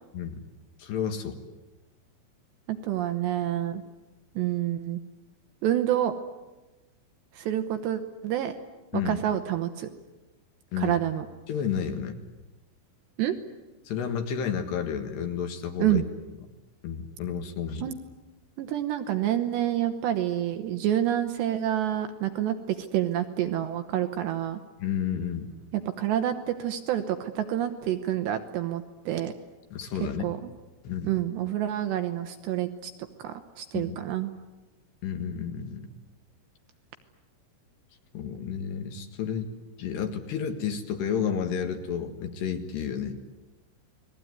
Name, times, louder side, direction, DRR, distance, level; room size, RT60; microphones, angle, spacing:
voice 1, 0.8-1.4 8.9-9.2 10.7-11.0 11.5-12.2 13.8-16.0 16.8-17.8 24.8-25.5 29.7-30.3 30.8-31.1 33.7-34.0 35.0-35.9 38.1-39.5 39.8-43.2, left 7 dB, 65° left, 6 dB, 3.4 m, -31 dB
voice 2, 2.7-3.8 4.4-5.0 5.6-6.1 7.4-8.5 8.9-9.9 10.8-11.3 13.2-13.4 15.8-16.0 17.8-17.9 18.6-22.6 22.9-24.6 25.7-29.3 30.2-30.4 31.0-32.9 33.2-34.3, right 11 dB, 75° right, 7 dB, 2.9 m, -28 dB
30.0 x 21.0 x 9.5 m, 1.1 s
omnidirectional pair, 5.8 m